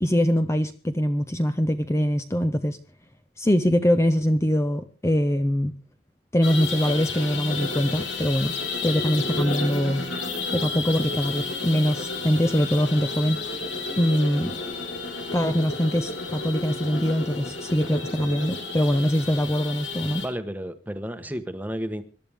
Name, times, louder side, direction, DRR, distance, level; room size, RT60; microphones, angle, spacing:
voice 1, 0.0-2.8 3.4-5.7 6.3-8.5 8.8-10.0 10.5-13.4 14.0-14.6 15.3-20.2, equal, 15° left, 8 dB, 0.7 m, -23 dB
sound 1, 6.4-20.3, left 3 dB, 85° left, 4.5 m, -31 dB
voice 2, 20.2-22.0, equal, 10° right, 9 dB, 1.2 m, -32 dB
25.5 x 12.0 x 3.5 m, 0.36 s
head